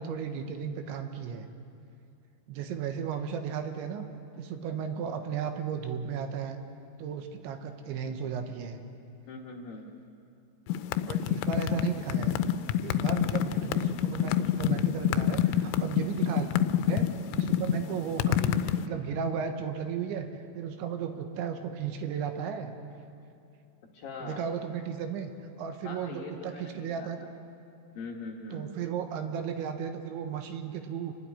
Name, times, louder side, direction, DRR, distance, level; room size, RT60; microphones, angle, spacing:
voice 1, 0.0-1.5 2.5-4.1 4.4-6.6 7.0-8.8 11.1-12.4 12.8-16.5 16.9-17.1 17.4-20.3 20.6-22.7 24.2-25.3 25.6-27.2 28.5-31.2, right 7 dB, 80° right, 6 dB, 3.5 m, -35 dB
voice 2, 9.3-9.9 23.9-24.5 25.8-27.3 27.9-28.7, left 3 dB, 65° left, 0 dB, 2.6 m, -42 dB
sound 1, 10.7-18.8, left 12 dB, 90° left, 3.1 m, -27 dB
27.5 x 12.5 x 9.8 m, 2.5 s
omnidirectional pair, 5.4 m